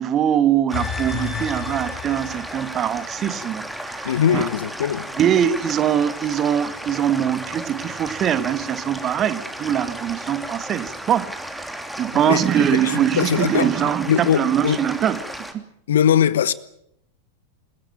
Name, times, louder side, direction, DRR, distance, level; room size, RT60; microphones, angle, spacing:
voice 1, 0.0-4.5 5.2-15.2 15.5-15.6, right 10 dB, 30° right, 1.6 m, -22 dB
sound 1, 0.7-3.9 4.3-4.4, left 7 dB, 45° left, 5.4 m, -32 dB
sound 2, 0.7-15.5, right 1 dB, ahead, 2.9 m, -34 dB
voice 2, 4.0-5.1 12.3-13.7 14.1-14.8 15.9-16.5, left 9 dB, 60° left, 1.1 m, -21 dB
27.5 x 16.0 x 8.9 m
figure-of-eight pair, 90°, 0 cm